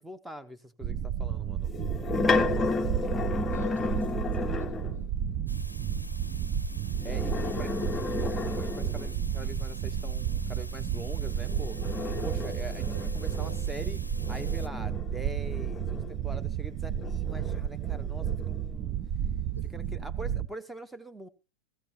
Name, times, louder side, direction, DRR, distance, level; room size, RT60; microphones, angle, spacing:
voice 1, 0.0-1.7 7.0-7.7 8.2-11.8 12.2-14.0 14.3-19.0 19.7-21.3, right 1 dB, 5° right, 13 dB, 1.0 m, -43 dB
sound 1, 0.8-20.5, right 9 dB, 35° right, 0.6 m, -32 dB
sound 2, 1.7-5.0 6.9-9.3 11.2-16.4 17.0-18.7, left 4 dB, 15° left, 0.7 m, -33 dB
voice 2, 3.5-5.1 7.4-7.7 12.9-13.0 13.3-13.6 19.5-19.7, equal, 75° right, 1 dB, 3.2 m, -47 dB
sound 3, 5.5-14.7, left 1 dB, 90° left, 0.6 m, -47 dB
16.0 x 15.5 x 2.8 m, 0.29 s
figure-of-eight pair, 90°, 0 cm